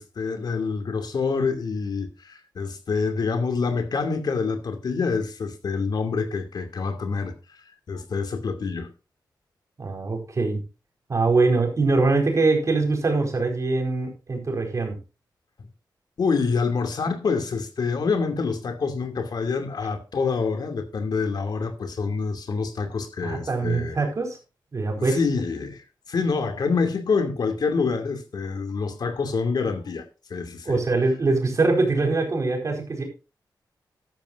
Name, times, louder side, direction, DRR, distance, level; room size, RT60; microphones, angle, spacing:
voice 1, 0.0-7.3 7.9-8.9 16.2-24.0 24.9-30.0 30.3-30.8, left 4 dB, 65° left, 2.5 m, -26 dB
voice 2, 9.8-10.6 11.1-15.0 23.2-24.4 24.7-25.2 30.7-33.0, right 3 dB, 40° right, 4.4 m, -23 dB
14.0 x 12.0 x 2.6 m
wide cardioid pair, 145°, 8 cm